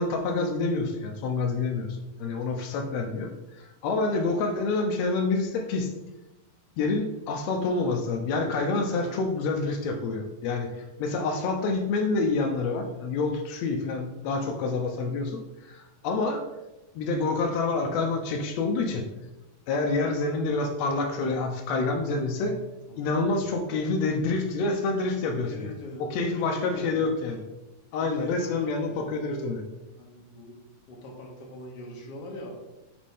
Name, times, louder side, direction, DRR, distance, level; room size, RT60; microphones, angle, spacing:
voice 1, 0.0-3.3 3.6-5.9 6.8-10.7 11.0-16.4 16.9-19.1 19.7-22.6 23.0-25.7 26.1-27.4 27.9-29.6, left 3 dB, 85° left, 4 dB, 1.5 m, -27 dB
voice 2, 22.9-23.5 25.5-27.1 28.0-29.0 30.0-30.6 30.9-32.5, left 1 dB, 55° left, -1 dB, 2.1 m, -42 dB
7.6 x 5.3 x 3.5 m, 1.0 s
omnidirectional pair, 3.8 m